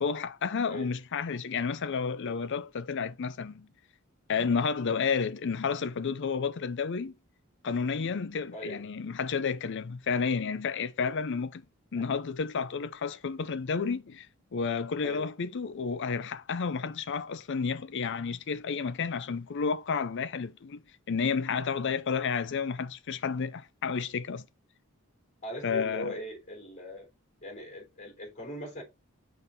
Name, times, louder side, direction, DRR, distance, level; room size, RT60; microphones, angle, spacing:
voice 1, 0.0-3.7 4.3-7.1 7.6-11.6 11.9-14.3 14.5-20.8 21.1-24.5 25.6-26.1, left 5 dB, 60° left, 0.5 m, -31 dB
voice 2, 8.5-8.9 11.9-12.1 15.0-15.3 25.4-27.1 27.4-28.8, equal, 35° left, 3.4 m, -40 dB
7.0 x 3.9 x 4.0 m
head